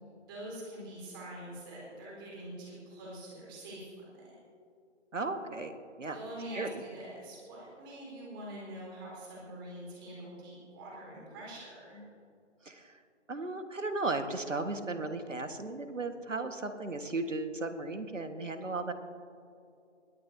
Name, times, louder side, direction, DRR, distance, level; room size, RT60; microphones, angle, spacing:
voice 1, 0.3-4.3 6.1-12.0, right 1 dB, 20° right, -4 dB, 4.2 m, -45 dB
voice 2, 5.1-5.7 6.0-6.2 6.5-6.8 12.6-13.0 13.3-18.9, right 3 dB, 85° right, 7 dB, 1.6 m, -35 dB
22.0 x 15.0 x 2.8 m, 2.5 s
figure-of-eight pair, 155°, 37 cm